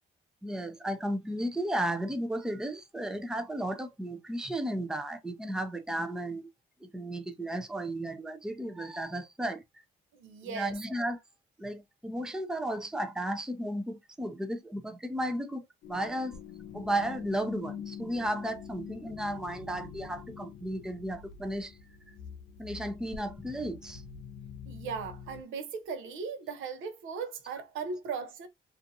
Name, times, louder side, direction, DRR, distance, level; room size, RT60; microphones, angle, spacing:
voice 1, 0.4-6.5 6.8-9.6 10.4-11.2 11.6-16.4 16.7-21.8 22.6-24.0, right 1 dB, 5° right, 0.5 m, -34 dB
voice 2, 10.1-10.8 24.7-28.5, right 5 dB, 80° right, 0.6 m, -38 dB
sound 1, 15.8-25.4, left 7 dB, 80° left, 0.5 m, -45 dB
2.5 x 2.4 x 2.6 m
cardioid pair, 90°, 20 cm